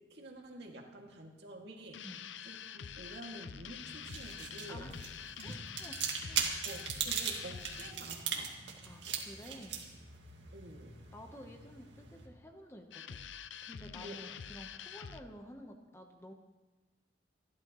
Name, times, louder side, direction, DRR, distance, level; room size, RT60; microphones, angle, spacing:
voice 1, 0.0-2.1 2.4-4.9 5.5-5.6 6.6-8.6 10.5-11.0 14.0-14.4, right 1 dB, 70° right, 0 dB, 2.3 m, -49 dB
sound 1, 1.9-8.0 12.9-15.2, left 8 dB, 85° left, 0.5 m, -46 dB
sound 2, 3.8-12.3, right 7 dB, 85° right, 2.0 m, -40 dB
voice 2, 5.4-5.9 6.2-6.5 8.8-9.8 11.1-13.2 13.6-16.3, equal, 15° left, 3 dB, 1.0 m, -51 dB
28.0 x 12.0 x 3.1 m, 1.2 s
head